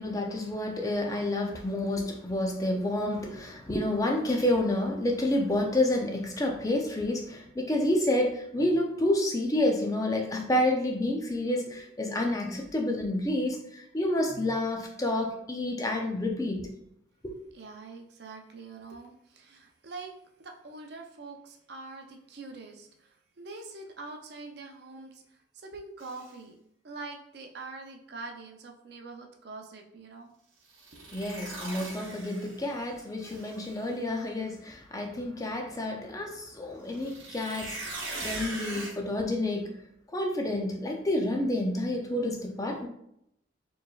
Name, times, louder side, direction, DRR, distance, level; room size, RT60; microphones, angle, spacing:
voice 1, 0.0-16.7 17.2-17.4 31.1-39.7 40.1-42.9, left 1 dB, 15° left, 1 dB, 0.4 m, -29 dB
voice 2, 17.5-20.1 20.4-26.6 26.8-30.3 30.9-31.1, right 3 dB, 55° right, 3 dB, 0.5 m, -44 dB
sound 1, 26.0-26.3 30.7-32.8 33.2-33.9 36.9-38.9, right 2 dB, 80° right, 0.9 m, -40 dB
4.4 x 3.1 x 2.3 m, 0.75 s
head